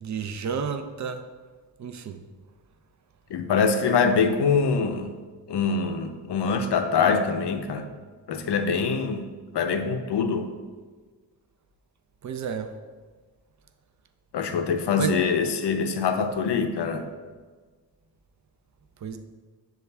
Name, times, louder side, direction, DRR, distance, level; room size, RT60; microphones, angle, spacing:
voice 1, 0.0-1.2 1.8-2.2 12.2-12.7 15.0-15.2 19.0-19.2, right 6 dB, 45° right, 8 dB, 0.4 m, -31 dB
voice 2, 3.3-5.1 5.5-7.9 8.3-9.3 9.5-10.5 14.3-17.0, left 5 dB, 75° left, 7 dB, 0.5 m, -24 dB
6.8 x 2.4 x 3.2 m, 1.4 s
wide cardioid pair, 80°, 41 cm